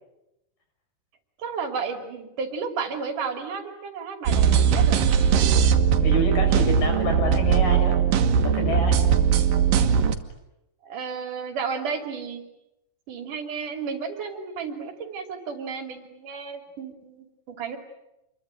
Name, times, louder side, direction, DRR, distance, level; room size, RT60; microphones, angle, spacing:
voice 1, 1.4-5.0 10.8-12.4 13.1-17.8, right 5 dB, 70° right, 5 dB, 4.2 m, -32 dB
sound 1, 4.3-10.2, right 7 dB, 85° right, 3.1 m, -20 dB
voice 2, 6.0-8.0 8.4-9.0, left 2 dB, 80° left, 5 dB, 7.6 m, -28 dB
27.5 x 22.5 x 9.0 m, 0.91 s
omnidirectional pair, 3.8 m